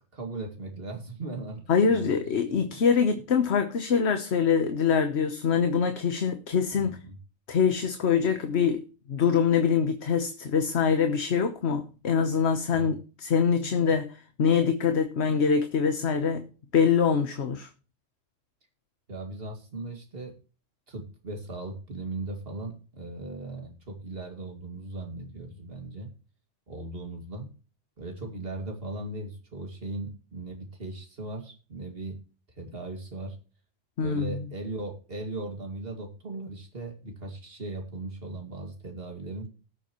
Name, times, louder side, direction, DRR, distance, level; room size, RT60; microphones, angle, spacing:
voice 1, 0.1-2.8 6.7-7.2 12.7-13.0 19.1-20.4 20.9-26.1 26.7-27.5 28.0-32.2 32.6-33.4 34.0-39.5, right 2 dB, 45° right, 2.5 m, -38 dB
voice 2, 1.7-7.0 7.5-8.8 9.1-16.5 16.7-17.7 34.0-34.4, left 6 dB, 60° left, 1.2 m, -24 dB
19.5 x 7.0 x 3.0 m
omnidirectional pair, 1.3 m